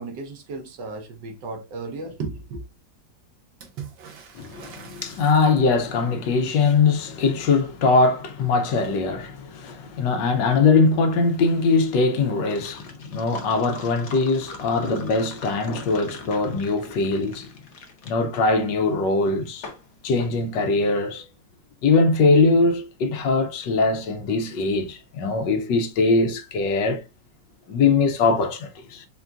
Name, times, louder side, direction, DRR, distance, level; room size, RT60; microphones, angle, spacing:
voice 1, 0.0-2.6, right 3 dB, 70° right, 1.5 m, -34 dB
Water / Splash splatter, 3.6-6.0 9.3-9.4 9.6-10.4 11.5-11.6, right 8 dB, 85° right, 1.7 m, -43 dB
voice 2, 4.4-17.5 18.0-19.7 20.0-21.3 21.8-27.0 27.7-29.1, left 3 dB, 75° left, 1.3 m, -21 dB
sound 1, 11.3-21.1, left 3 dB, 55° left, 0.8 m, -43 dB
4.4 x 3.7 x 2.3 m
omnidirectional pair, 2.0 m